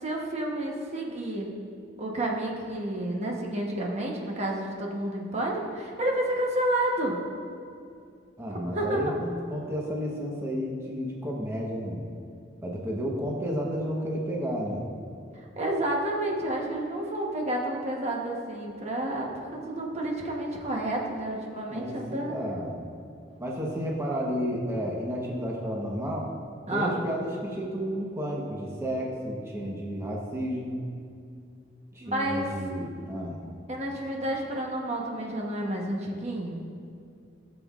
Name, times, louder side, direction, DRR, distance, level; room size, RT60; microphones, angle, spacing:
voice 1, 0.0-1.5 2.0-7.2 8.7-9.0 15.6-22.4 26.7-27.0 32.0-32.5 33.7-36.6, right 1 dB, 35° right, -1 dB, 1.0 m, -30 dB
voice 2, 8.4-12.0 12.6-14.8 21.7-22.8 23.4-26.2 26.7-30.8 31.9-33.4, equal, 15° right, -3 dB, 1.0 m, -32 dB
16.5 x 7.3 x 2.4 m, 2.4 s
head